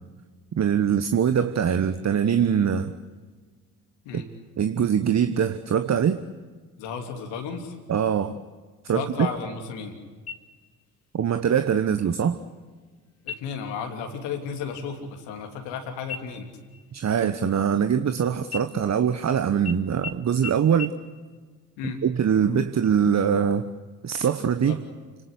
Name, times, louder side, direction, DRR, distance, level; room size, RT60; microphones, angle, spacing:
voice 1, 0.5-3.0 4.1-4.2 4.6-6.2 7.9-8.4 8.8-9.3 11.1-12.4 16.9-20.9 22.0-23.7 24.0-24.8, right 8 dB, 35° right, 10 dB, 1.2 m, -23 dB
voice 2, 6.8-7.8 8.9-10.0 13.2-16.5 21.8-22.0 24.6-24.8, left 6 dB, 70° left, 4 dB, 3.1 m, -33 dB
sound 1, 10.3-10.9 11.3-11.4 12.0-12.5 13.2-13.7 14.1-14.4 14.7-15.8 16.1-18.1 18.5-19.3 19.7-19.8 20.0-20.1 20.4-20.5 20.8-20.9, left 7 dB, 35° left, 2.6 m, -39 dB
29.5 x 19.0 x 8.1 m, 1.4 s
figure-of-eight pair, 45°, 44 cm